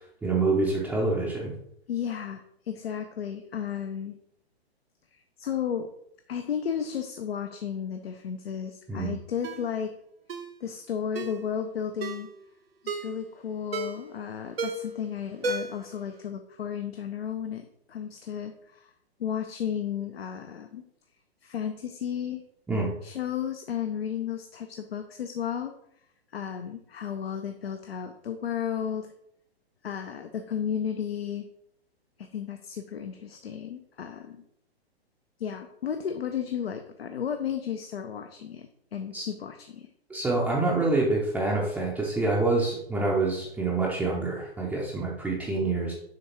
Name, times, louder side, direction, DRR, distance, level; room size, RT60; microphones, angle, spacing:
voice 1, 0.2-1.5 8.9-9.1 22.7-22.9 39.1-39.3 40.1-45.9, right 3 dB, 5° right, -6 dB, 0.6 m, -26 dB
voice 2, 1.9-4.2 5.1-5.9 6.3-9.9 10.6-12.3 12.8-18.9 19.2-20.8 21.4-22.4 23.0-25.7 26.3-29.1 29.8-31.5 32.2-34.4 35.4-39.9, left 8 dB, 70° left, 6 dB, 0.6 m, -33 dB
Ringtone, 9.4-9.7 10.3-10.5 11.2-11.4 12.0-12.3 12.9-13.2 13.7-14.1 14.6-15.0 15.4-15.9 16.2-16.3, right 2 dB, 65° right, 0.8 m, -33 dB
6.6 x 3.5 x 4.4 m, 0.74 s
figure-of-eight pair, 115°, 32 cm